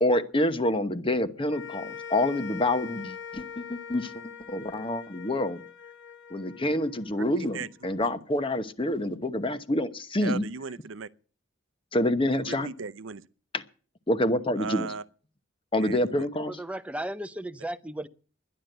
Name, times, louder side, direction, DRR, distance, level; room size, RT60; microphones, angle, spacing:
voice 1, 0.0-5.6 6.3-10.4 11.9-12.7 13.5-13.6 14.1-14.9 15.7-16.6, left 1 dB, 25° left, 0.9 m, -27 dB
sound 1, 1.5-7.9, left 7 dB, 60° left, 0.7 m, -43 dB
voice 2, 10.2-11.1 12.3-13.2 14.6-15.0 15.8-16.3, right 5 dB, 80° right, 0.6 m, -36 dB
voice 3, 16.5-18.1, right 1 dB, 5° right, 0.6 m, -35 dB
12.0 x 10.5 x 7.9 m
head